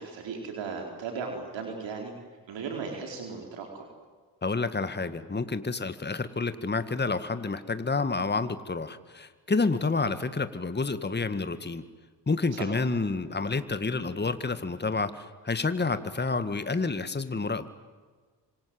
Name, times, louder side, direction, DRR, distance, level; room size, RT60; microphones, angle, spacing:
voice 1, 0.0-2.1 2.5-3.8 12.5-12.7, right 5 dB, 65° right, 2 dB, 4.6 m, -36 dB
voice 2, 4.4-11.8 12.3-17.7, left 3 dB, 20° left, 11 dB, 1.9 m, -29 dB
28.0 x 26.0 x 7.9 m, 1.5 s
hypercardioid pair, 45°, 47 cm